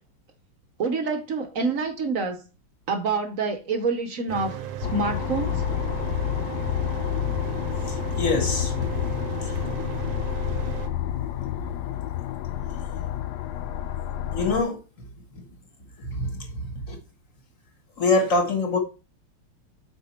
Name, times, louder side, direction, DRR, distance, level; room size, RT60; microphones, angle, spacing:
voice 1, 0.8-2.4 2.9-4.6 4.9-5.5, right 4 dB, 55° right, 1.0 m, -27 dB
Mechanical fan, 4.3-10.9, right 10 dB, 75° right, 1.6 m, -35 dB
sound 1, 4.8-14.6, left 12 dB, 80° left, 0.9 m, -29 dB
voice 2, 7.9-8.7 9.5-9.6 14.3-14.8 16.0-17.0 18.0-18.8, left 3 dB, 40° left, 1.7 m, -25 dB
8.3 x 4.5 x 4.3 m
omnidirectional pair, 2.3 m